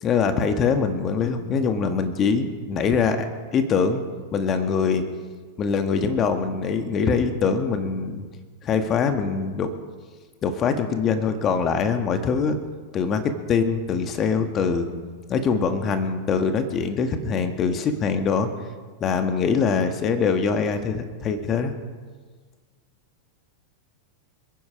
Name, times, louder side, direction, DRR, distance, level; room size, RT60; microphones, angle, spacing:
voice 1, 0.0-4.0 4.3-5.0 5.6-8.2 8.6-9.7 10.4-12.6 12.9-14.9 15.3-18.5 19.0-21.8, left 5 dB, 30° left, 7 dB, 1.7 m, -23 dB
28.0 x 10.0 x 4.9 m, 1.5 s
figure-of-eight pair, 90°, 0 cm